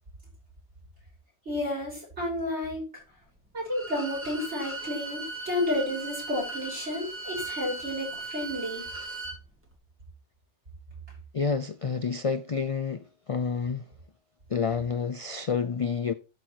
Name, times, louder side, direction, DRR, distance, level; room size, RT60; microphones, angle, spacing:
voice 1, 1.4-2.9 3.5-8.8, left 1 dB, 70° right, 6.4 m, -31 dB
Bowed string instrument, 3.7-9.4, right 2 dB, 10° right, 2.0 m, -38 dB
voice 2, 11.3-13.9 14.5-16.1, left 5 dB, 55° left, 0.3 m, -29 dB
12.0 x 4.4 x 4.6 m
omnidirectional pair, 1.2 m